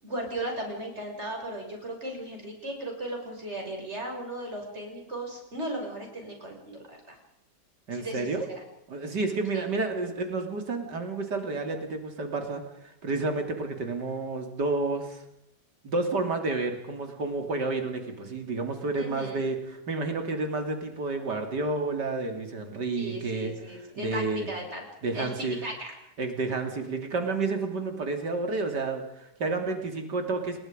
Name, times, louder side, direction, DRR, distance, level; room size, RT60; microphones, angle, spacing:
voice 1, 0.0-7.2 7.9-8.5 9.5-9.7 18.9-19.4 23.0-24.8 25.1-25.9, right 1 dB, 40° right, 1 dB, 6.9 m, -36 dB
voice 2, 7.9-8.5 8.9-15.2 15.8-24.5 25.0-25.6 26.2-30.6, right 3 dB, 85° right, 5 dB, 3.5 m, -30 dB
29.5 x 20.5 x 5.2 m, 0.82 s
omnidirectional pair, 1.8 m